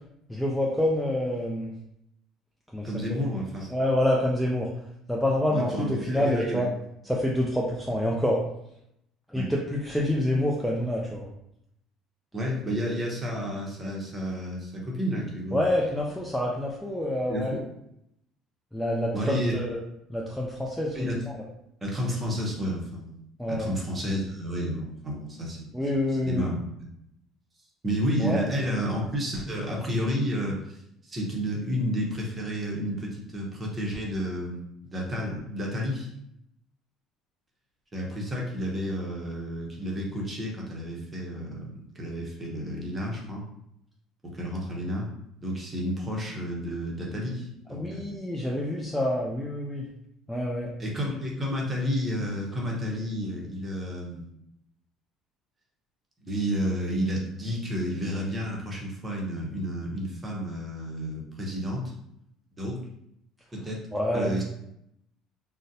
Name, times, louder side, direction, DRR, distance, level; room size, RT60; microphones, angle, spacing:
voice 1, 0.3-1.7 2.7-3.2 3.7-4.7 5.1-6.7 7.0-8.4 9.3-11.3 15.5-17.5 18.7-19.8 20.1-21.1 21.3-21.4 23.4-23.7 25.7-26.5 28.2-28.4 47.7-49.9 50.3-50.7 63.9-64.3, left 1 dB, ahead, -3 dB, 0.3 m, -27 dB
voice 2, 2.8-3.7 5.5-6.7 9.3-9.5 12.3-16.0 17.3-17.6 19.1-19.6 20.9-21.2 21.8-23.2 23.5-26.9 27.8-36.1 37.9-43.4 44.2-45.1 45.4-48.1 50.8-54.3 56.2-61.8 62.6-62.8 63.6-63.8 64.1-64.4, equal, 20° right, -2 dB, 0.7 m, -31 dB
3.8 x 2.1 x 2.7 m, 0.78 s
cardioid pair, 140°, 0 cm